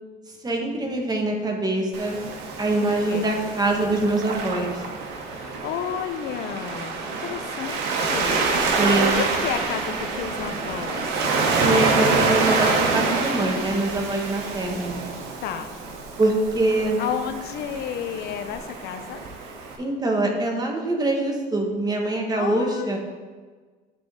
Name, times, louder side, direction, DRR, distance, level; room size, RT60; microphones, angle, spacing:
voice 1, 0.4-2.2 2.6-4.8 8.8-9.2 11.6-15.0 16.2-17.0 19.8-23.0, right 2 dB, 25° right, 1 dB, 1.3 m, -24 dB
Waves surf, 1.9-19.8, right 4 dB, 85° right, 1.0 m, -27 dB
voice 2, 2.8-3.3 5.2-6.9 7.2-8.6 9.2-11.1 15.4-15.8 17.0-19.2 22.4-23.0, left 9 dB, 75° left, 8 dB, 0.6 m, -32 dB
11.0 x 3.8 x 3.7 m, 1.4 s
cardioid pair, 110°, 17 cm